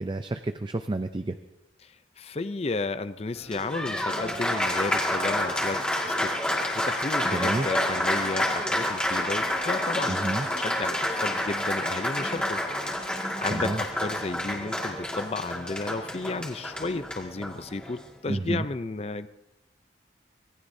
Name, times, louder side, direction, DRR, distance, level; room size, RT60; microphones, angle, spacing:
voice 1, 0.0-1.4 7.3-7.7 10.1-10.5 13.5-13.8 18.3-18.7, right 2 dB, 25° right, 8 dB, 0.4 m, -30 dB
voice 2, 1.8-6.3 6.9-12.6 12.9-19.3, left 3 dB, 30° left, 12 dB, 0.5 m, -33 dB
Applause, 3.4-18.1, left 1 dB, 5° left, 1.9 m, -29 dB
25.5 x 19.5 x 2.7 m, 0.90 s
head